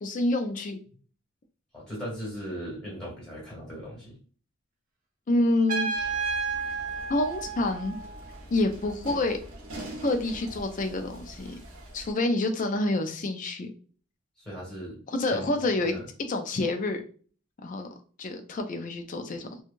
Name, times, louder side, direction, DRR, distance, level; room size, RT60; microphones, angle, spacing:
voice 1, 0.0-0.8 5.3-6.2 7.1-8.0 8.5-9.4 10.0-11.6 11.9-13.7 15.1-16.0 16.3-17.0 17.6-17.9 18.2-19.5, left 2 dB, 35° left, 6 dB, 0.4 m, -27 dB
voice 2, 1.7-4.2 14.4-15.0 15.3-16.0, equal, 5° left, -5 dB, 1.4 m, -38 dB
Trumpet, 5.7-8.3, right 5 dB, 40° right, 0.7 m, -32 dB
sound 1, 5.9-12.1, right 1 dB, 65° right, 0.9 m, -44 dB
3.0 x 2.3 x 2.5 m, 0.41 s
head